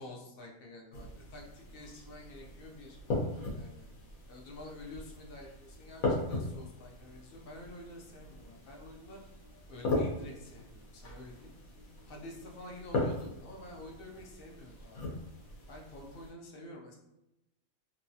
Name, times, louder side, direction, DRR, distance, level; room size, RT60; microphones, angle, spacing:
voice 1, 0.0-3.0 3.5-3.9 4.3-9.2 9.7-11.5 12.1-15.2 15.7-17.0, left 1 dB, 65° left, 0 dB, 0.6 m, -49 dB
sound 1, 0.9-16.3, left 2 dB, 90° left, 1.2 m, -39 dB
2.9 x 2.2 x 2.6 m, 0.89 s
omnidirectional pair, 1.4 m